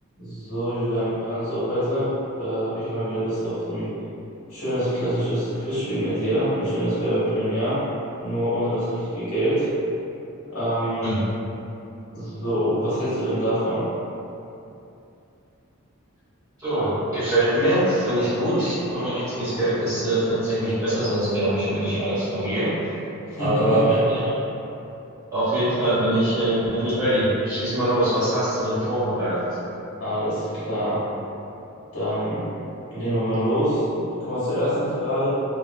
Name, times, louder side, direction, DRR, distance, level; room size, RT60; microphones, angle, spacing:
voice 1, 0.2-2.1 2.4-3.9 4.5-7.8 8.2-9.7 10.5-11.2 12.1-13.9 23.3-24.0 30.0-31.0 31.9-32.5 32.9-35.3, equal, 70° left, -13 dB, 1.2 m, -25 dB
voice 2, 16.6-22.7 23.4-24.3 25.3-29.3, right 1 dB, 15° right, -17 dB, 1.5 m, -23 dB
3.6 x 2.8 x 2.3 m, 2.8 s
head